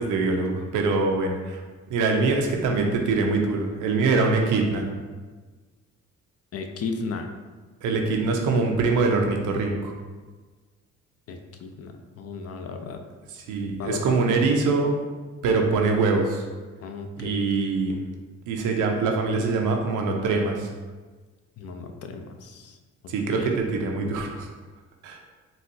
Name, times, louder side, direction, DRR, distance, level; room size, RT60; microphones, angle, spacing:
voice 1, 0.0-1.6 1.9-4.9 7.8-9.9 13.5-14.9 15.4-16.5 17.2-18.0 18.5-20.7 23.1-24.5 25.0-25.2, right 3 dB, 85° right, 2 dB, 0.6 m, -23 dB
voice 2, 6.5-7.3 11.3-13.0 13.8-14.2 16.8-17.5 21.6-22.8 23.3-23.5, left 4 dB, 55° left, 5 dB, 0.4 m, -35 dB
4.0 x 2.3 x 2.6 m, 1.4 s
cardioid pair, 90°, 30 cm